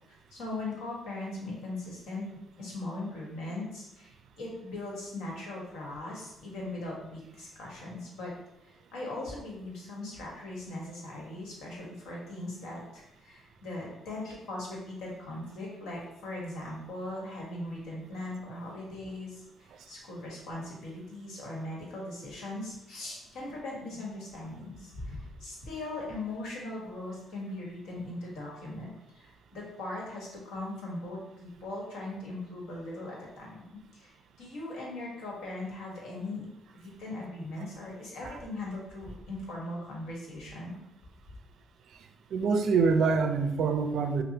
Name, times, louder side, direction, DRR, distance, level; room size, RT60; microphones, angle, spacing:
voice 1, 0.1-2.3 2.6-8.3 8.7-19.4 19.9-33.6 33.9-36.5 36.7-40.8, left 2 dB, 90° left, -3 dB, 1.2 m, -39 dB
voice 2, 42.3-44.2, right 5 dB, 70° right, 7 dB, 0.4 m, -25 dB
5.3 x 2.0 x 2.8 m, 0.87 s
cardioid pair, 90°, 0 cm